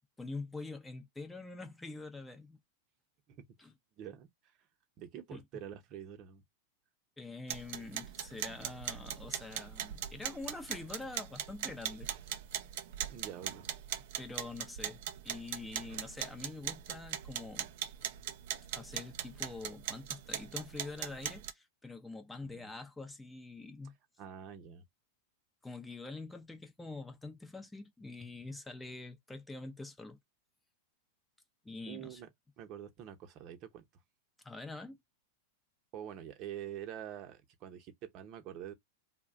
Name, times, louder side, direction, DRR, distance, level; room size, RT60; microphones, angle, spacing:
voice 1, 0.2-2.6 3.6-3.7 5.3-5.6 7.2-12.1 14.2-17.7 18.7-24.0 25.6-30.2 31.6-32.2 34.4-35.0, left 3 dB, 10° left, 0.5 m, -45 dB
voice 2, 4.0-4.3 5.0-6.4 13.1-13.7 22.4-22.7 24.2-24.8 31.9-32.3 32.6-33.8 35.9-38.7, right 10 dB, 40° right, 0.8 m, -46 dB
sound 1, 7.5-21.5, right 10 dB, 65° right, 0.4 m, -40 dB
2.4 x 2.1 x 3.6 m
hypercardioid pair, 125°, 0 cm